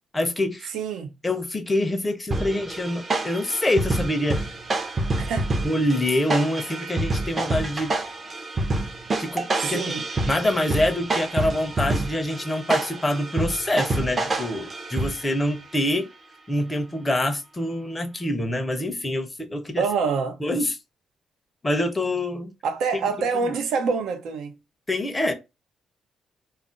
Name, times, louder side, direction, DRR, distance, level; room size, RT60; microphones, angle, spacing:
voice 1, 0.1-0.7 1.2-4.6 5.6-7.9 9.2-9.8 10.3-16.1 16.5-19.8 20.4-20.8 21.6-22.5 23.4-23.5 24.9-25.3, left 1 dB, 15° left, 0.6 m, -25 dB
voice 2, 0.7-1.1 5.2-5.5 9.6-10.0 19.8-20.4 22.6-24.6, right 5 dB, 80° right, 0.6 m, -26 dB
sound 1, 2.3-15.5, right 2 dB, 35° right, 0.6 m, -28 dB
2.4 x 2.0 x 3.7 m
cardioid pair, 90°, 0 cm